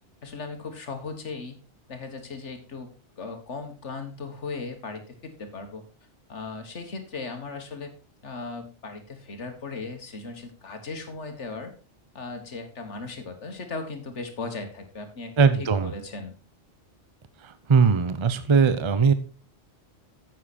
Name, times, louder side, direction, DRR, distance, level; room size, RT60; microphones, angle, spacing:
voice 1, 0.2-1.6 1.9-2.9 3.2-5.8 6.3-7.9 8.2-11.7 12.2-15.3 15.6-16.3, left 4 dB, 85° left, 6 dB, 1.9 m, -37 dB
voice 2, 15.4-15.9 17.4-19.1, right 5 dB, 30° right, 12 dB, 0.7 m, -20 dB
9.8 x 7.5 x 4.2 m, 0.34 s
omnidirectional pair, 1.2 m